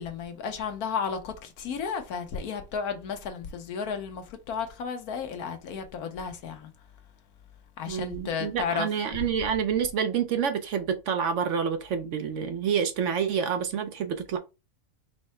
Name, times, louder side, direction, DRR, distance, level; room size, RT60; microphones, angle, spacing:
voice 1, 0.0-6.7 7.8-8.9 9.2-9.3, left 6 dB, 80° left, 1.3 m, -33 dB
voice 2, 7.9-14.4, right 7 dB, 65° right, 0.8 m, -28 dB
4.6 x 2.1 x 4.2 m
omnidirectional pair, 1.6 m